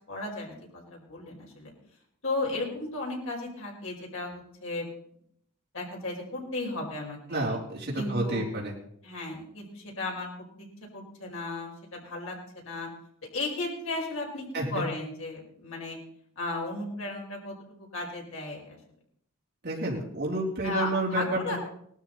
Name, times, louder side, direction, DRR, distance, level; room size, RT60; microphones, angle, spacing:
voice 1, 0.1-1.7 2.2-4.9 5.7-7.6 8.0-8.4 9.0-10.3 10.6-10.7 10.9-12.3 12.6-12.9 13.3-16.0 16.3-18.8 20.6-21.6, left 2 dB, 70° left, -2 dB, 5.1 m, -35 dB
voice 2, 7.3-8.7 14.5-14.8 19.6-21.2 21.5-21.6, right 2 dB, 55° right, -4 dB, 3.4 m, -30 dB
19.0 x 13.0 x 4.2 m, 0.70 s
head